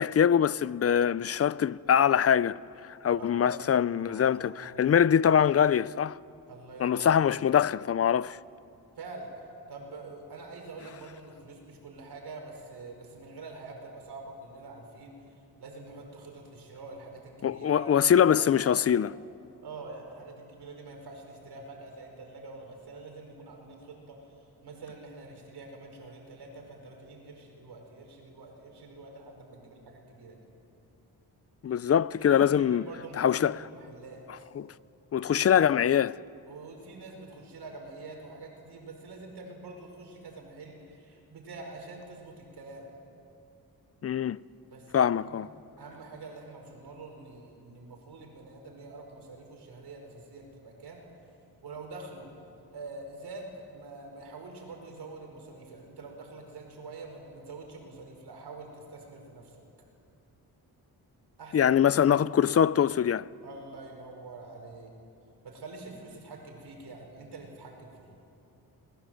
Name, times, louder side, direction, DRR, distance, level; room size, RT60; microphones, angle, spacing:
voice 1, 0.0-2.6 2.8-4.5 4.8-6.2 6.8-8.4 17.4-19.1 31.6-32.8 33.2-33.5 34.6-34.7 35.1-36.2 44.0-44.4 44.9-45.5 61.5-63.3, left 8 dB, 40° left, 0.5 m, -23 dB
voice 2, 3.2-5.0 6.5-7.5 9.0-9.3 9.7-15.2 15.6-19.0 19.6-24.2 24.6-30.5 32.2-34.5 36.5-42.9 44.7-45.5 45.8-51.1 51.6-52.3 52.7-59.6 61.4-61.8 62.1-62.3 63.4-64.9 65.4-68.1, right 3 dB, 85° right, 5.3 m, -45 dB
27.0 x 21.0 x 7.8 m
cardioid pair, 95°, 38 cm